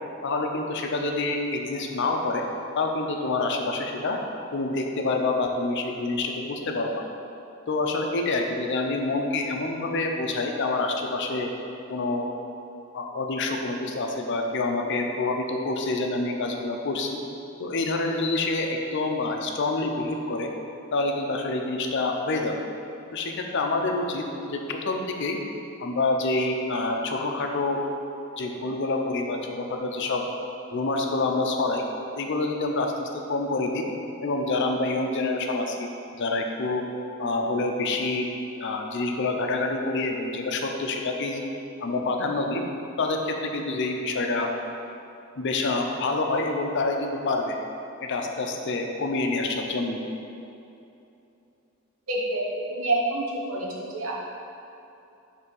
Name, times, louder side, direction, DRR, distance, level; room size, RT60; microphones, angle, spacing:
voice 1, 0.2-2.4 2.7-4.2 4.5-7.0 7.7-11.5 11.9-12.3 12.9-17.2 17.6-20.5 20.9-22.6 23.1-25.4 25.8-27.8 28.4-30.2 30.7-31.8 32.2-33.9 34.2-35.9 36.2-36.8 37.2-38.3 38.6-41.4 41.8-42.7 43.0-44.5 45.4-47.6 48.0-50.0, left 2 dB, 60° left, 3 dB, 0.6 m, -27 dB
voice 2, 52.1-54.1, right 2 dB, 85° right, -3 dB, 1.0 m, -27 dB
5.6 x 3.4 x 5.3 m, 2.8 s
head